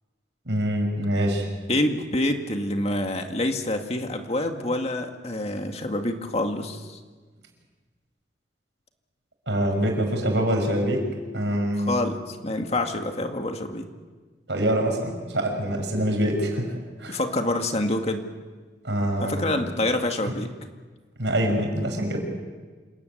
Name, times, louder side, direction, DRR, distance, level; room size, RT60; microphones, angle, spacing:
voice 1, 0.5-1.5 9.5-11.0 11.3-11.9 14.5-17.2 18.8-19.6 20.3-20.4 21.2-22.2, right 1 dB, 80° right, 3 dB, 5.9 m, -25 dB
voice 2, 1.7-7.0 11.9-13.9 17.1-18.3 19.2-20.5, left 1 dB, 35° left, 5 dB, 2.0 m, -27 dB
27.5 x 15.5 x 9.5 m, 1.4 s
head